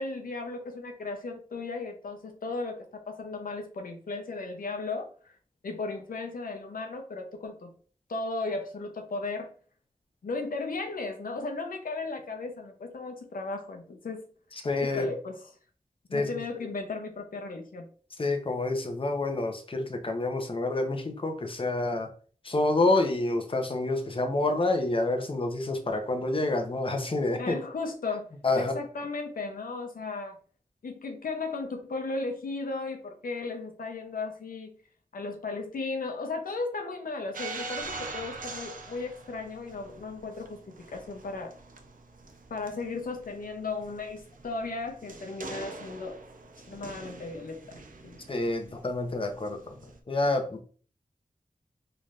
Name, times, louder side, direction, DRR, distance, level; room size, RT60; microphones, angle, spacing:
voice 1, 0.0-5.4 5.6-7.7 8.1-9.5 10.2-14.2 14.8-15.5 16.1-17.9 27.4-30.4 30.8-34.8 35.1-41.5 42.5-46.2 46.7-47.8 48.0-48.2, left 3 dB, 90° left, 4 dB, 0.6 m, -36 dB
voice 2, 14.6-15.1 16.1-16.3 18.2-22.1 22.4-27.6 28.4-28.8 48.3-49.7 50.1-50.6, left 2 dB, 40° left, 4 dB, 0.7 m, -28 dB
sound 1, 37.3-50.0, right 3 dB, 75° right, 0.6 m, -44 dB
3.9 x 3.2 x 2.4 m, 0.42 s
cardioid pair, 45°, 14 cm